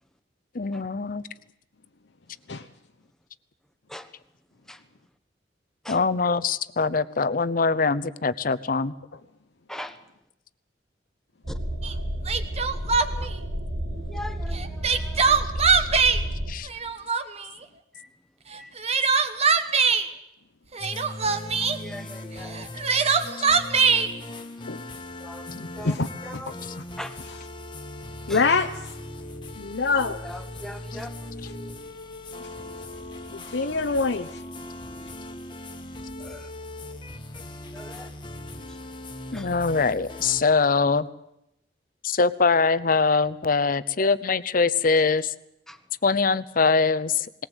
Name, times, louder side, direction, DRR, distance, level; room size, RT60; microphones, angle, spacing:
voice 1, 0.5-1.3 5.9-8.9 16.5-16.7 39.3-41.1 42.0-45.3 46.0-47.5, left 4 dB, 50° left, 14 dB, 0.7 m, -23 dB
sound 1, 11.4-16.5, right 1 dB, 75° right, 3.8 m, -31 dB
Crying sobbing, 11.8-11.9 12.3-13.3 14.5-16.2 16.7-17.5 18.5-20.1 20.7-21.8 22.5-24.1, right 5 dB, 35° right, 1.3 m, -22 dB
voice 2, 14.0-15.4 18.0-18.1 18.6-18.7 21.8-22.7 25.2-25.5 25.7-25.9 26.2-26.5 27.0-27.1 28.3-28.4 30.0-31.1 36.2-36.5 37.7-38.1 39.3-39.5 45.7-45.8, left 1 dB, 5° left, 8 dB, 1.3 m, -40 dB
sound 2, 20.8-40.4, left 1 dB, 30° left, 1.5 m, -39 dB
voice 3, 25.5-26.8 27.2-27.4 28.3-28.7 29.6-30.2 31.0-31.1 33.3-34.4, left 4 dB, 90° left, 4 dB, 0.9 m, -26 dB
20.0 x 18.5 x 8.1 m, 0.84 s
head